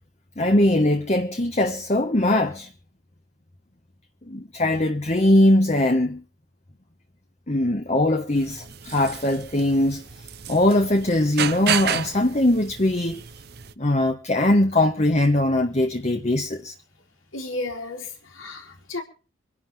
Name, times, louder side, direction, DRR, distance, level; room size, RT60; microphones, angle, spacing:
voice 1, 0.4-2.7 4.3-6.2 7.5-10.0 10.5-13.2 13.8-16.7, left 1 dB, 35° left, 1.3 m, -21 dB
sound 1, 8.4-13.7, right 8 dB, 50° right, 0.8 m, -31 dB
voice 2, 17.3-19.0, left 2 dB, 90° left, 4.2 m, -33 dB
26.0 x 11.5 x 3.7 m
head